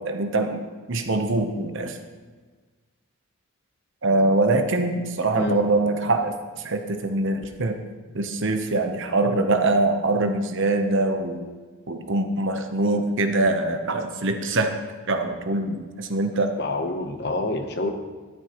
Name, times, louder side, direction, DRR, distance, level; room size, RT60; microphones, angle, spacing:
voice 1, 0.1-0.6 0.9-2.0 4.0-7.8 8.1-11.4 11.9-14.7 15.1-16.5, right 2 dB, 55° right, 6 dB, 0.9 m, -23 dB
voice 2, 16.6-17.9, left 2 dB, 50° left, 6 dB, 0.9 m, -27 dB
12.5 x 10.5 x 3.0 m, 1.4 s
head